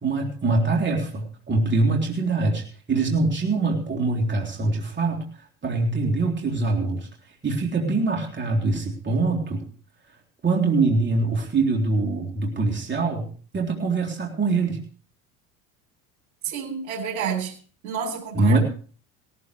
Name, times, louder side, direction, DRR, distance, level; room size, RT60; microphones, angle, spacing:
voice 1, 0.0-5.3 5.6-7.1 7.4-9.6 10.4-14.8 18.3-18.6, right 3 dB, 25° right, 3.4 m, -23 dB
voice 2, 16.4-17.6 17.8-18.6, right 7 dB, 80° right, 3.4 m, -29 dB
18.0 x 14.0 x 3.2 m
hypercardioid pair, 80°, 42 cm